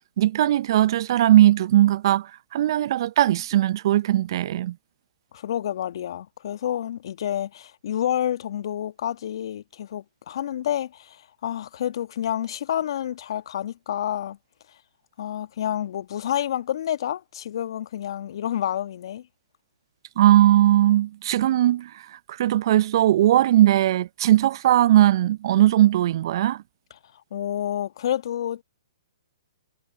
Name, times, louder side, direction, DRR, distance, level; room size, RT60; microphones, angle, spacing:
voice 1, 0.2-4.7 20.2-21.9 22.3-26.6, right 13 dB, 50° right, 0.7 m, -19 dB
voice 2, 5.3-14.4 15.2-19.2 27.3-28.6, left 10 dB, 55° left, 1.5 m, -29 dB
figure-of-eight pair, 125°, 3 cm